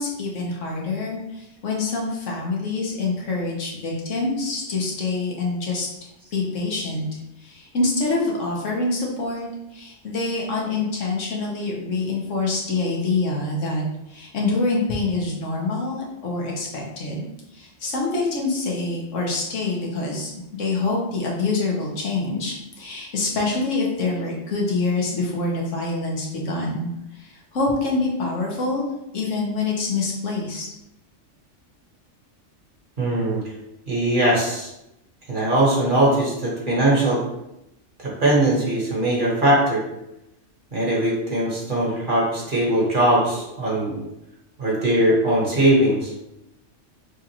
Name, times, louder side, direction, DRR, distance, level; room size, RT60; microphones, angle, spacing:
voice 1, 0.0-5.9 6.3-7.1 7.4-13.8 14.1-17.3 17.5-20.3 20.6-26.9 27.2-28.8 29.1-30.7, left 3 dB, 85° left, -2 dB, 1.4 m, -26 dB
voice 2, 33.0-33.4 33.9-34.7 35.3-37.2 38.0-39.8 40.7-44.0 44.6-46.1, right 1 dB, 45° right, -5 dB, 1.5 m, -20 dB
6.2 x 2.5 x 2.9 m, 0.88 s
omnidirectional pair, 1.2 m